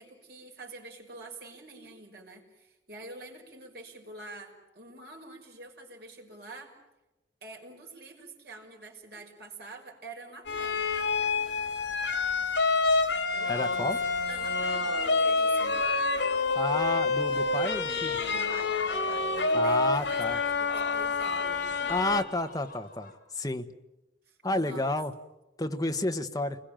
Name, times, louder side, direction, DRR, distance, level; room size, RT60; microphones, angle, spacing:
voice 1, 0.0-6.8 7.4-10.9 13.3-13.9 14.3-15.8 18.3-21.6 24.3-24.9, right 2 dB, 55° right, 1 dB, 5.8 m, -46 dB
sound 1, 10.5-22.2, left 3 dB, 75° left, 3.8 m, -27 dB
voice 2, 13.5-14.0 16.5-18.2 19.5-20.4 21.9-23.7 24.4-25.1 25.6-26.6, left 1 dB, 20° left, 7 dB, 1.3 m, -30 dB
sound 2, 18.1-23.2, left 2 dB, 45° left, 5.8 m, -49 dB
29.5 x 21.5 x 9.0 m, 1.0 s
head